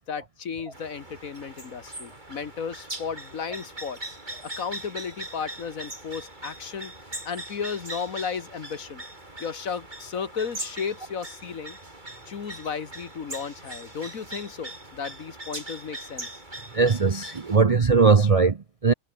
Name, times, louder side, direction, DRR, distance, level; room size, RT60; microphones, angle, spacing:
voice 1, 0.0-4.0 4.4-6.9 7.2-9.0 9.4-11.8 12.3-16.4, left 6 dB, 60° left, 1.9 m, -34 dB
sound 1, 0.7-17.6, right 1 dB, 30° right, 4.5 m, -41 dB
voice 2, 16.7-18.9, right 4 dB, 45° right, 0.4 m, -20 dB
omnidirectional pair, 1.7 m